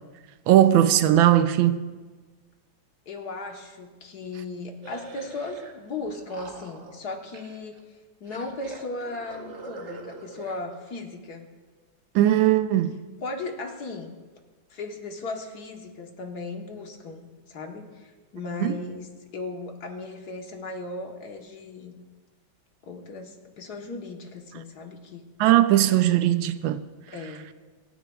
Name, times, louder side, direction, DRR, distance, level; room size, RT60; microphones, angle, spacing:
voice 1, 0.5-1.8 12.1-13.0 18.6-18.8 25.4-26.8, right 12 dB, 80° right, 1.3 m, -19 dB
voice 2, 3.1-7.8 8.2-11.5 13.2-14.1 14.7-21.9 22.9-25.2 27.1-27.5, left 3 dB, 55° left, 1.6 m, -36 dB
sound 1, 4.8-5.7 6.0-7.8 8.3-10.6, right 3 dB, 45° right, 1.2 m, -43 dB
26.5 x 9.6 x 2.3 m
omnidirectional pair, 2.1 m